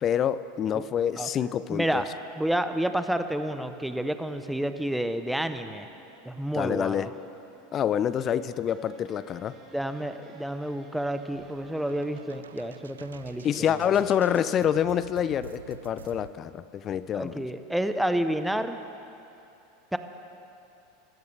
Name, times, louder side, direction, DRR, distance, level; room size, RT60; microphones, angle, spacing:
voice 1, 0.0-2.0 6.5-7.1 7.7-9.6 13.4-17.5, left 9 dB, 35° left, 16 dB, 0.5 m, -27 dB
voice 2, 1.7-2.1 2.4-5.9 6.2-7.1 9.7-13.5 13.8-14.0 17.1-18.8 19.9-20.0, right 1 dB, 5° right, 9 dB, 0.8 m, -29 dB
sound 1, 4.8-12.4, right 3 dB, 35° right, 3.9 m, -56 dB
sound 2, 11.3-16.3, right 6 dB, 90° right, 0.5 m, -47 dB
24.5 x 13.5 x 3.4 m, 2.8 s
hypercardioid pair, 95°, 0 cm